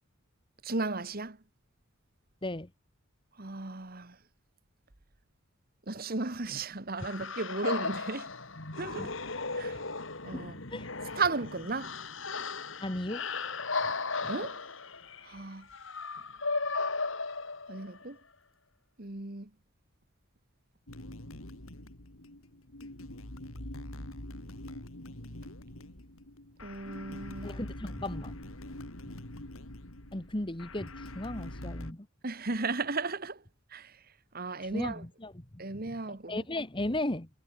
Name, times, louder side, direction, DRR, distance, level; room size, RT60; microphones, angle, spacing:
voice 1, 0.6-1.4 3.4-4.1 5.9-8.3 8.8-9.1 9.6-9.7 10.2-10.5 11.2-11.9 14.3-14.6 15.3-15.6 17.7-18.2 19.0-19.5 26.6-27.5 32.2-33.4 33.7-33.9 34.3-35.0 35.6-36.4, right 3 dB, 45° right, 1.7 m, -35 dB
sound 1, 7.0-18.0, left 4 dB, 65° left, 2.9 m, -36 dB
voice 2, 12.8-13.3 14.2-14.3 27.4-28.4 30.1-32.1 34.7-35.6 36.1-37.3, left 1 dB, 25° left, 1.5 m, -36 dB
sound 2, 20.9-31.9, left 1 dB, 80° left, 3.8 m, -44 dB
head